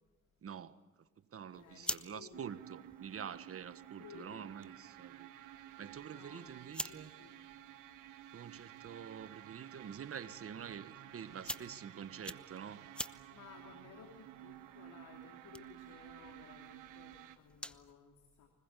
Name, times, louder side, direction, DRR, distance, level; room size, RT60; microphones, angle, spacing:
voice 1, 0.4-5.3 5.8-7.1 8.3-12.9, right 8 dB, 50° right, 1.4 m, -47 dB
voice 2, 1.5-2.6 4.0-4.5 6.1-7.5 11.3-11.5 13.3-18.5, left 6 dB, 80° left, 3.2 m, -57 dB
sound 1, 1.5-17.9, left 1 dB, 5° left, 0.9 m, -50 dB
sound 2, 2.3-17.4, right 12 dB, 90° right, 1.7 m, -53 dB
25.0 x 20.5 x 8.3 m
cardioid pair, 90°, 30 cm